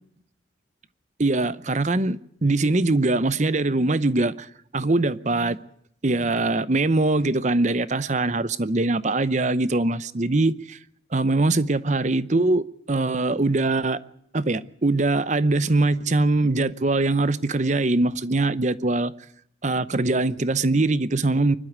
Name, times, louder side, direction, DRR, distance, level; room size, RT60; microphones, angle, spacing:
voice 1, 1.2-4.5 4.7-5.6 6.0-10.8 11.1-14.0 14.3-19.1 19.6-21.6, right 2 dB, 40° right, 0.7 m, -22 dB
24.5 x 12.0 x 9.4 m
head